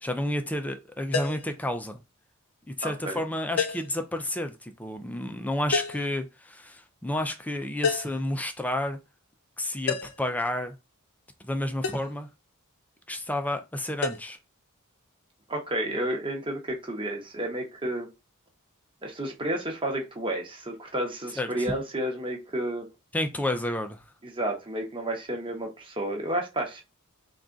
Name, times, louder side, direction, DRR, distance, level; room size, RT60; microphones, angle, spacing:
voice 1, 0.0-2.0 2.7-9.0 9.6-10.7 11.4-12.3 13.1-14.4 21.4-21.5 23.1-24.0, left 1 dB, 5° left, 0.4 m, -30 dB
sound 1, 1.1-1.5 3.6-4.0 5.7-6.1 7.8-8.2 9.9-10.3 11.8-12.1 14.0-14.2, left 4 dB, 75° left, 0.6 m, -29 dB
voice 2, 2.8-3.2 15.5-18.1 19.0-22.9 24.2-26.8, right 1 dB, 25° right, 1.0 m, -31 dB
3.6 x 2.4 x 3.8 m
head